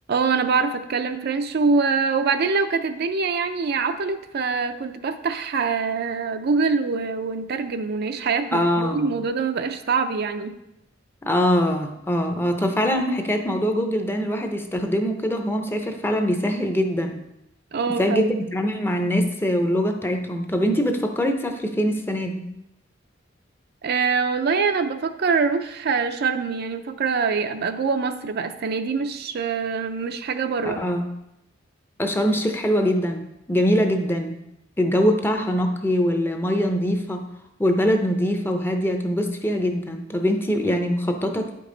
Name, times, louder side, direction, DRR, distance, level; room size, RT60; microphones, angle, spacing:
voice 1, 0.1-10.5 17.7-18.3 23.8-30.8, right 5 dB, 55° right, 8 dB, 0.4 m, -24 dB
voice 2, 8.5-9.1 11.2-17.2 17.9-22.4 30.6-31.1 32.0-34.4 34.8-37.2 37.6-41.5, equal, 10° left, 5 dB, 0.6 m, -23 dB
9.0 x 5.3 x 3.8 m, 0.88 s
head